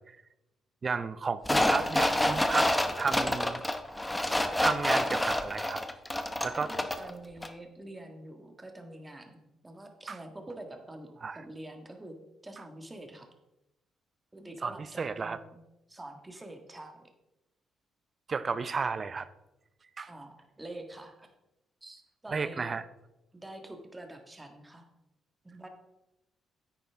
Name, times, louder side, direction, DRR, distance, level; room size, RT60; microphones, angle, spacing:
voice 1, 0.8-2.7 3.0-3.6 4.6-5.8 6.4-6.7 10.1-10.2 11.2-11.4 14.6-15.4 18.3-19.3 20.0-20.1 22.3-22.8, right 5 dB, 40° right, 14 dB, 0.6 m, -32 dB
sound 1, 1.4-7.1 7.4-7.5, left 1 dB, 10° left, 0.8 m, -28 dB
voice 2, 6.5-12.1 12.4-13.3 14.3-15.6 15.9-17.0 20.1-21.3 21.8-22.6 23.3-24.9 25.4-25.7, right 1 dB, 15° right, 4 dB, 1.6 m, -46 dB
10.0 x 8.6 x 3.5 m, 0.94 s
cardioid pair, 90°, 0 cm